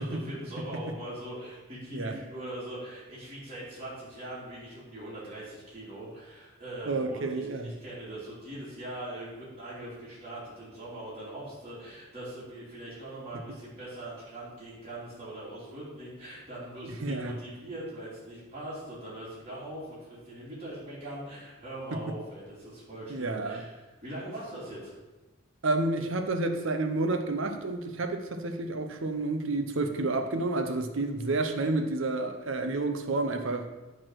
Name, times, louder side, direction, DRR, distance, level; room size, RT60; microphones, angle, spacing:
voice 1, 0.0-24.9, right 1 dB, 30° right, -9 dB, 2.8 m, -41 dB
voice 2, 6.8-7.7 16.8-17.4 21.9-22.1 23.1-23.6 25.6-33.7, right 2 dB, 65° right, 6 dB, 0.8 m, -30 dB
9.0 x 4.2 x 6.2 m, 1.2 s
head